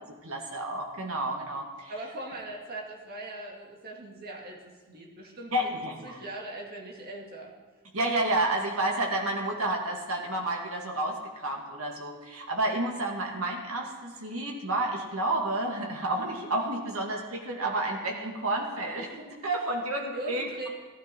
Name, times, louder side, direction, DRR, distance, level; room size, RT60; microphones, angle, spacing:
voice 1, 0.2-1.9 5.5-6.2 7.9-20.7, right 2 dB, 85° right, 1 dB, 2.3 m, -30 dB
voice 2, 1.9-7.5 20.1-20.7, right 1 dB, 45° right, -1 dB, 2.1 m, -40 dB
15.0 x 12.0 x 4.7 m, 1.4 s
head